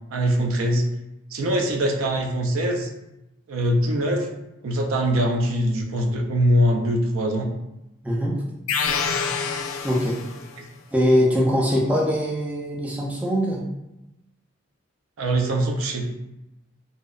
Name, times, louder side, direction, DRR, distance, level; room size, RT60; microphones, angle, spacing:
voice 1, 0.1-0.8 1.3-2.9 3.5-4.3 4.6-7.5 10.6-10.7 15.2-16.0, equal, 85° right, 3 dB, 0.4 m, -22 dB
voice 2, 8.0-8.4 9.8-10.2 10.9-13.6, equal, 5° right, -4 dB, 0.3 m, -22 dB
sound 1, 8.7-10.6, left 5 dB, 85° left, 0.3 m, -27 dB
2.7 x 2.0 x 2.3 m, 0.92 s
head